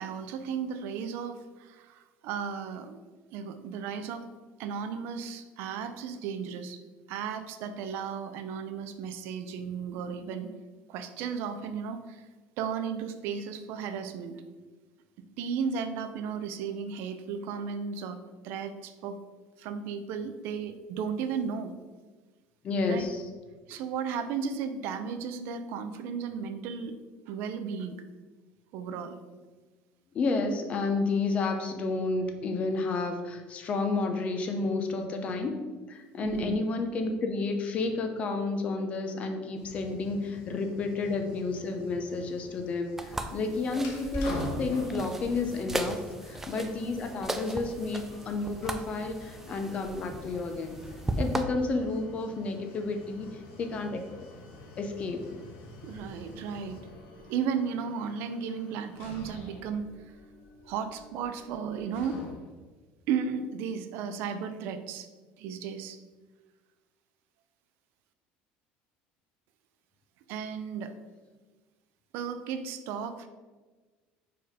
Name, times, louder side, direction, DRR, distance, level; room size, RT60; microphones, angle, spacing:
voice 1, 0.0-3.0 3.3-4.3 4.6-6.8 7.1-10.5 10.9-12.3 12.6-14.4 15.2-18.2 18.4-19.2 19.6-21.7 22.9-23.0 23.7-26.9 27.3-28.0 28.7-29.2 36.2-36.6 55.8-56.9 57.2-60.2 60.7-62.2 63.1-65.1 65.4-66.0 70.3-70.9 72.1-73.3, right 6 dB, 60° right, 9 dB, 0.5 m, -34 dB
voice 2, 22.6-23.2 30.1-35.5 35.9-50.8 51.2-54.0 54.8-55.2, left 3 dB, 30° left, 5 dB, 0.7 m, -31 dB
sound 1, 39.6-56.8, left 2 dB, 80° left, 1.4 m, -52 dB
sound 2, 43.0-51.4, right 2 dB, 10° right, 0.3 m, -37 dB
sound 3, 43.7-62.7, left 2 dB, 65° left, 1.3 m, -46 dB
4.9 x 4.7 x 4.9 m, 1.3 s
cardioid pair, 160°, 4 cm